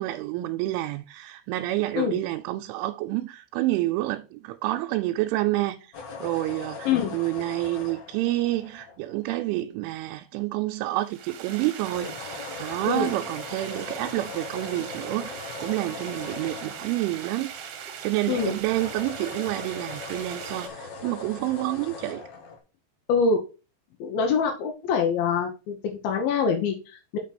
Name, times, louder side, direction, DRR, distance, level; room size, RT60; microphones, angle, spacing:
voice 1, 0.0-22.3, right 17 dB, 85° right, 3.0 m, -29 dB
sound 1, 5.9-9.4 11.8-18.0 18.3-22.6, left 4 dB, 90° left, 1.5 m, -40 dB
voice 2, 6.9-7.2 12.8-13.1 18.3-18.5 23.1-23.4 24.0-27.2, left 5 dB, 75° left, 2.3 m, -25 dB
sound 2, 11.0-20.7, right 8 dB, 70° right, 2.4 m, -40 dB
6.2 x 5.9 x 4.2 m
omnidirectional pair, 5.4 m